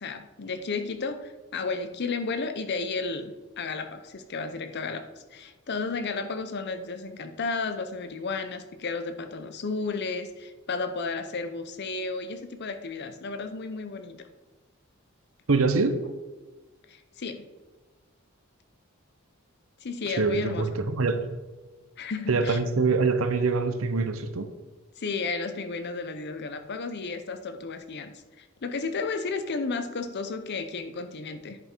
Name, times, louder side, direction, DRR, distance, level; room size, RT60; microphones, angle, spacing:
voice 1, 0.0-14.3 16.9-17.5 19.8-20.8 22.0-22.6 25.0-31.6, left 4 dB, 55° left, 8 dB, 0.7 m, -33 dB
voice 2, 15.5-16.0 20.1-21.2 22.3-24.5, right 4 dB, 75° right, 10 dB, 0.8 m, -24 dB
10.5 x 5.7 x 4.5 m, 1.3 s
head